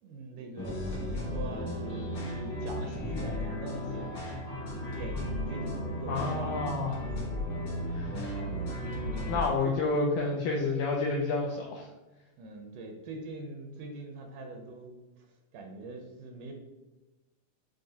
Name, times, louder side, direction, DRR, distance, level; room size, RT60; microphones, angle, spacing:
voice 1, 0.0-4.2 4.6-6.6 8.1-8.3 9.6-9.7 12.4-15.0 15.5-16.5, right 2 dB, 80° right, 3 dB, 2.0 m, -43 dB
sound 1, 0.6-9.5, left 1 dB, 60° left, 1.4 m, -35 dB
voice 2, 6.1-7.1 7.9-8.1 9.3-11.9, left 3 dB, 80° left, -1 dB, 1.8 m, -29 dB
7.4 x 2.7 x 2.7 m, 1.1 s
omnidirectional pair, 3.8 m